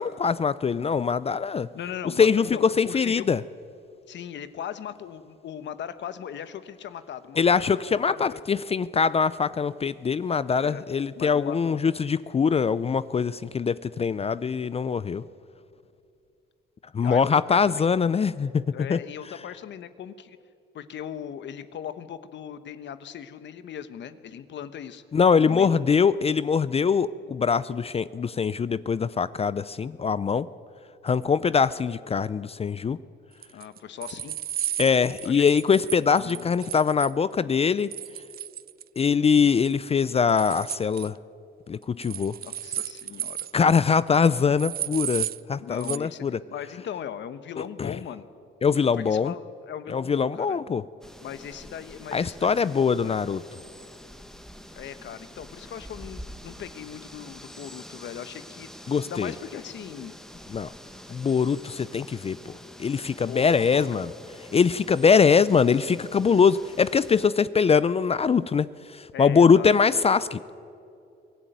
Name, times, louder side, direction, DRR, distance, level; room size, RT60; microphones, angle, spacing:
voice 1, 0.0-1.7 2.2-3.4 7.4-15.2 16.9-18.6 18.9-19.0 25.1-30.5 31.0-33.0 34.8-37.9 39.0-41.1 41.7-42.3 43.5-46.3 47.8-47.9 48.6-49.3 49.9-50.8 52.1-53.4 58.9-59.3 60.5-60.7 61.1-62.5 62.8-64.1 64.5-68.7 68.9-70.4, left 6 dB, 30° left, 17 dB, 0.5 m, -22 dB
voice 2, 1.7-3.3 4.1-8.4 10.6-10.8 11.2-11.8 17.0-17.8 18.7-20.4 20.7-25.0 25.4-25.9 33.5-34.4 35.2-35.5 36.2-36.6 42.4-43.4 45.6-48.3 48.7-50.6 51.2-53.2 54.7-60.1 63.2-64.0 69.1-69.7, left 9 dB, 65° left, 12 dB, 1.1 m, -39 dB
sound 1, 33.4-37.1 37.9-39.1 39.4-39.7 40.0-41.1 42.0-43.6 43.8-43.9 44.1-44.2 44.6-45.4 45.8-46.0, right 10 dB, 50° right, 0.5 m, -34 dB
sound 2, 51.0-67.3, equal, ahead, 1.5 m, -46 dB
23.0 x 15.0 x 9.2 m, 2.6 s
cardioid pair, 90°, 20 cm